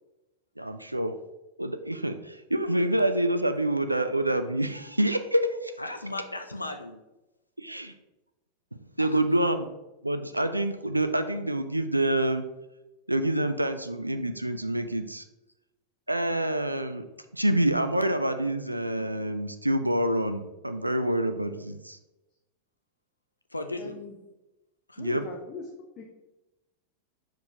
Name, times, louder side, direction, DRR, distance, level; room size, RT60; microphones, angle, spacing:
voice 1, 0.6-1.1 1.6-5.7 7.6-7.9 8.7-9.7 10.0-12.4 13.1-15.2 16.1-17.0 17.3-22.0 25.0-25.2, right 1 dB, 85° right, 9 dB, 0.4 m, -27 dB
voice 2, 5.8-7.0 9.0-9.2 23.5-24.0 24.9-25.0, left 2 dB, 85° left, 7 dB, 0.4 m, -36 dB
voice 3, 23.7-24.1 25.0-26.0, left 4 dB, 35° left, 1 dB, 0.8 m, -41 dB
4.7 x 4.6 x 4.8 m, 0.99 s
figure-of-eight pair, 90°, 0 cm